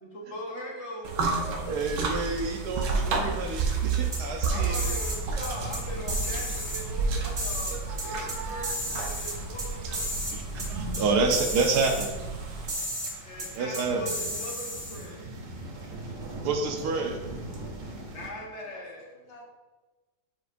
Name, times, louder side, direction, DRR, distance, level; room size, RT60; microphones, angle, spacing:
voice 1, 0.0-1.7 4.3-10.3 13.2-15.4 15.8-15.9 18.1-19.1, equal, 45° left, -2 dB, 1.3 m, -40 dB
sound 1, 1.0-12.7, right 4 dB, 90° right, 1.4 m, -31 dB
sound 2, 1.7-18.3, right 1 dB, 55° right, 0.5 m, -42 dB
voice 2, 1.7-4.8 7.7-8.7 10.3-12.1 13.5-14.0 16.4-17.2, right 4 dB, 70° right, 4 dB, 1.3 m, -29 dB
sound 3, 4.1-5.2 5.4-5.8 6.1-6.8 7.4-8.4 8.6-9.7 9.9-10.3 10.6-10.7 10.9-11.0 11.3-12.1 12.7-13.1 13.4-13.5 13.7-15.1, equal, 35° right, 1.2 m, -33 dB
voice 3, 15.9-16.4 16.8-17.1 17.5-18.0 19.0-19.5, left 4 dB, 75° left, 0 dB, 1.5 m, -51 dB
8.0 x 4.7 x 2.6 m, 1.2 s
omnidirectional pair, 1.8 m